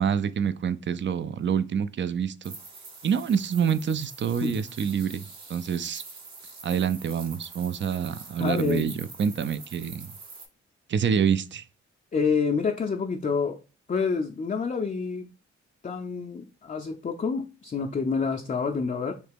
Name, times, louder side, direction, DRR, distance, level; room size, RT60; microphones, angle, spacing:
voice 1, 0.0-2.5 3.0-6.0 6.6-10.1 10.9-11.6, right 7 dB, 40° right, 0.4 m, -27 dB
sound 1, 2.4-10.5, right 3 dB, 60° right, 1.0 m, -45 dB
voice 2, 8.4-9.0 12.1-13.6 13.9-15.3 15.8-19.1, left 5 dB, 25° left, 0.5 m, -28 dB
3.2 x 2.9 x 3.4 m
supercardioid pair, 40°, 30 cm